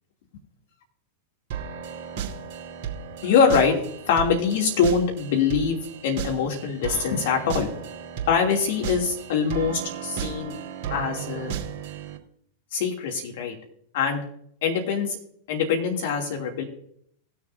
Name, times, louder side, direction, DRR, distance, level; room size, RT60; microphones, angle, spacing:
sound 1, 1.5-12.2, right 8 dB, 55° right, 2.0 m, -35 dB
voice 1, 3.2-3.8 4.1-7.7 8.3-10.5 10.9-11.6 12.7-13.5 13.9-14.2 14.6-15.2 15.5-16.6, left 6 dB, 60° left, 1 dB, 2.8 m, -23 dB
19.5 x 6.8 x 2.7 m, 0.68 s
hypercardioid pair, 95°, 0 cm